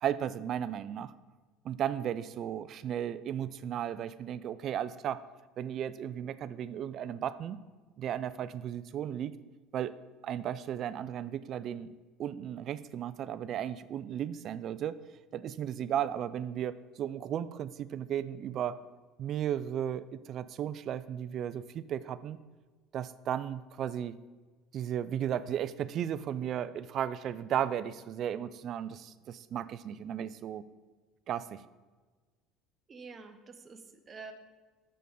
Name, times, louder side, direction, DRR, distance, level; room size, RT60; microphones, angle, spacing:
voice 1, 0.0-1.1 1.6-5.2 5.6-7.6 8.0-9.3 9.7-9.9 10.2-11.9 12.2-15.0 15.3-18.8 19.2-22.4 22.9-24.2 24.7-30.6 31.3-31.6, right 10 dB, 45° right, 15 dB, 0.4 m, -35 dB
voice 2, 32.9-34.3, right 4 dB, 25° right, 6 dB, 0.8 m, -48 dB
6.7 x 6.3 x 5.3 m, 1.3 s
cardioid pair, 125°, 0 cm